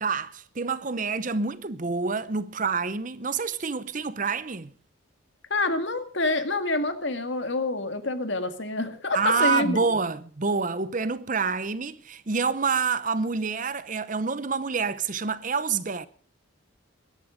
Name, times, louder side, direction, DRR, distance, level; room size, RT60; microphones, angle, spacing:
voice 1, 0.0-4.7 9.1-16.1, right 5 dB, 40° right, 0.7 m, -27 dB
voice 2, 5.5-9.8, left 2 dB, 60° left, 1.9 m, -27 dB
21.5 x 11.5 x 5.1 m
head